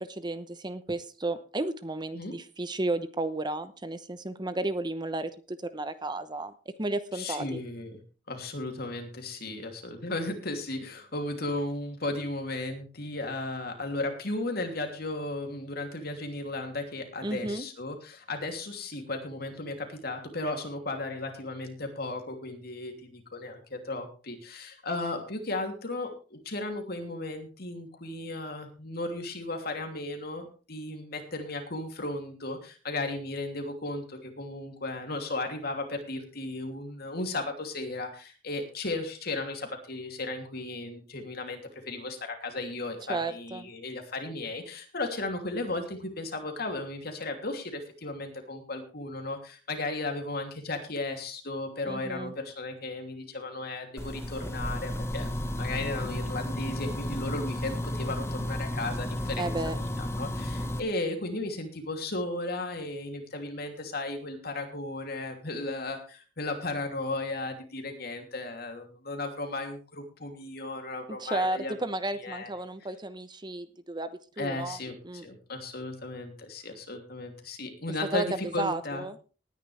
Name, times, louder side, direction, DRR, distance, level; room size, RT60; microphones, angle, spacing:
voice 1, 0.0-6.5 6.8-7.6 17.2-17.7 43.1-43.7 51.9-52.3 59.4-59.8 71.1-74.1 74.4-74.8 75.0-75.2 78.1-78.3 78.6-79.2, right 2 dB, 25° right, 12 dB, 0.9 m, -33 dB
voice 2, 7.1-8.0 8.3-55.3 55.6-59.5 59.7-71.7 72.2-72.5 74.4-75.0 75.2-79.1, left 2 dB, 60° left, 4 dB, 2.9 m, -35 dB
sound 1, 54.0-60.8, left 1 dB, 15° left, 1.4 m, -33 dB
19.0 x 10.0 x 3.4 m, 0.35 s
head